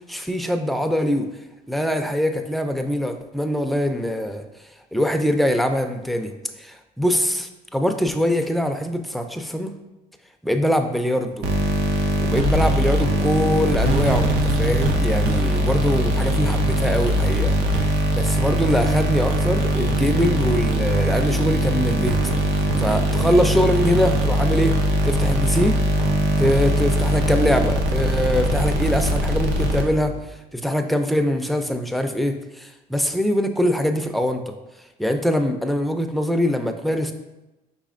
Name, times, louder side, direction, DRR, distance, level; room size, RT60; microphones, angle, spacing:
voice 1, 0.1-1.3 1.7-4.4 4.9-6.3 6.6-9.7 10.4-11.5 12.2-17.6 17.9-22.2 22.5-24.7 25.0-25.8 26.4-30.1 30.5-34.5 35.0-37.1, equal, ahead, 6 dB, 0.4 m, -23 dB
sound 1, 11.4-30.2, right 1 dB, 90° right, 0.7 m, -21 dB
4.9 x 4.1 x 2.5 m, 1.0 s
cardioid pair, 100°, 17 cm